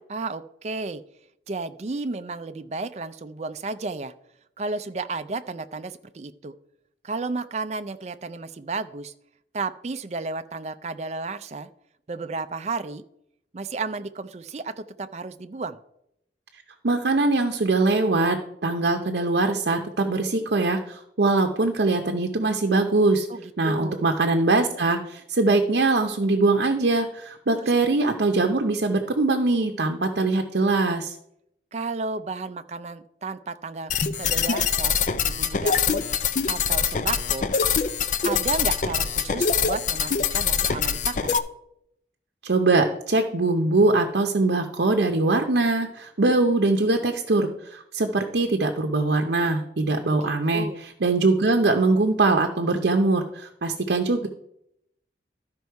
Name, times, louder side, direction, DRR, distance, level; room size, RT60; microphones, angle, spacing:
voice 1, 0.1-1.0 1.5-4.1 4.6-6.5 7.0-9.1 9.5-11.7 12.1-13.0 13.5-15.8 23.3-24.1 27.6-27.7 31.7-37.5 38.2-41.4 50.2-50.8, right 3 dB, 40° right, 11 dB, 0.4 m, -33 dB
voice 2, 16.8-23.3 23.6-31.1 42.4-54.3, right 3 dB, 70° right, 4 dB, 0.7 m, -22 dB
sound 1, 33.9-41.4, left 6 dB, 45° left, 0.4 m, -24 dB
13.0 x 5.3 x 4.6 m, 0.78 s
head